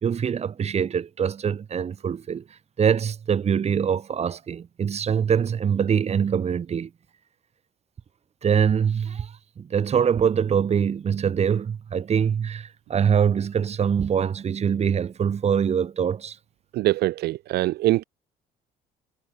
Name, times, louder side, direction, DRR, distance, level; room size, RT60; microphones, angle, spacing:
voice 1, 0.0-2.4 2.8-6.9 8.4-16.4, right 7 dB, 40° right, 1.9 m, -24 dB
voice 2, 16.7-18.0, right 17 dB, 75° right, 0.7 m, -23 dB
cardioid pair, 110°, 17 cm